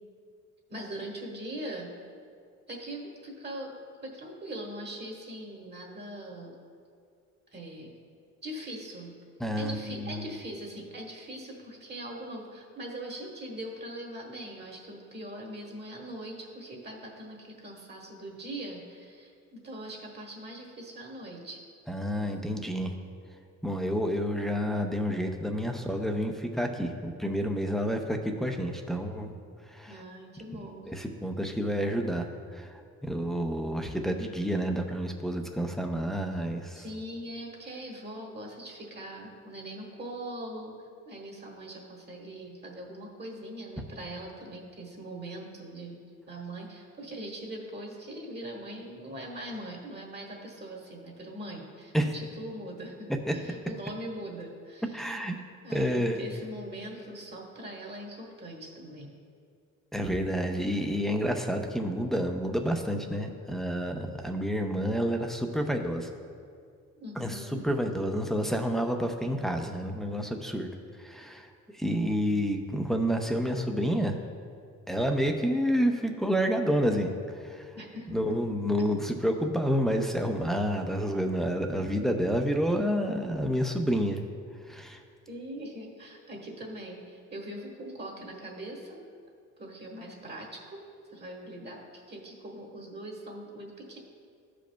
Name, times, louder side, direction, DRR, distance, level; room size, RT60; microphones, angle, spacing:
voice 1, 0.7-1.9 2.7-3.7 4.0-6.5 7.5-7.9 8.4-9.1 9.6-19.3 19.6-21.6 29.8-30.8 36.7-40.8 41.0-46.0 46.3-55.2 55.6-59.1 67.0-67.6 77.7-78.3 78.8-78.9 85.3-89.0 89.6-90.8 91.1-94.0, right 1 dB, 35° right, -1 dB, 1.4 m, -41 dB
voice 2, 9.4-10.2 21.9-22.9 23.6-29.3 29.7-30.0 30.9-32.3 32.5-32.7 33.0-36.8 51.9-52.1 53.3-53.4 54.9-55.3 55.7-56.2 59.9-66.1 67.2-70.7 71.0-71.5 71.8-74.1 74.9-77.1 77.4-77.7 78.1-84.2 84.7-85.0, equal, ahead, 3 dB, 0.6 m, -29 dB
14.5 x 5.1 x 2.3 m, 2.3 s
cardioid pair, 90°, 30 cm